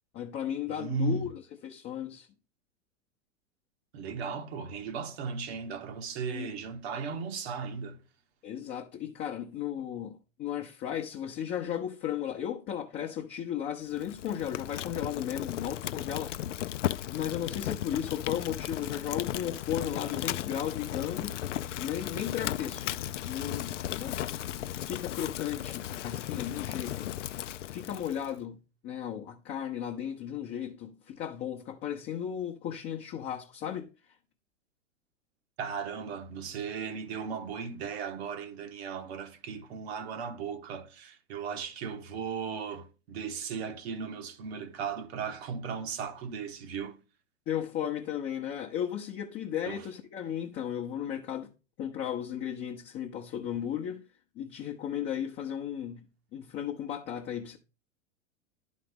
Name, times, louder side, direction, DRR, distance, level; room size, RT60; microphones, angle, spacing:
voice 1, 0.1-2.3 6.3-6.5 8.4-16.4 17.1-21.4 21.8-24.2 24.9-27.1 27.7-33.9 47.5-51.5 51.8-54.0 54.3-56.1 56.3-57.6, left 9 dB, 30° left, 0.8 m, -35 dB
voice 2, 0.7-1.2 3.9-8.0 35.6-47.0 49.7-49.8, right 6 dB, 55° right, 1.2 m, -36 dB
Fire, 13.9-28.3, left 12 dB, 70° left, 0.5 m, -36 dB
11.0 x 4.1 x 3.6 m
figure-of-eight pair, 100°, 38 cm